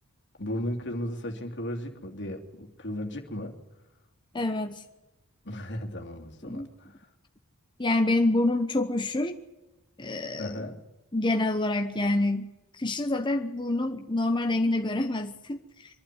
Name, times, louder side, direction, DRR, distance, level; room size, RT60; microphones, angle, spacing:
voice 1, 0.4-3.6 5.4-6.9 10.4-10.8, left 1 dB, 55° left, 4 dB, 2.9 m, -35 dB
voice 2, 4.3-4.8 6.4-6.7 7.8-9.4 10.0-10.6 11.1-12.5 12.8-15.6, left 2 dB, 20° left, 5 dB, 1.0 m, -27 dB
24.5 x 12.0 x 9.7 m, 0.99 s
head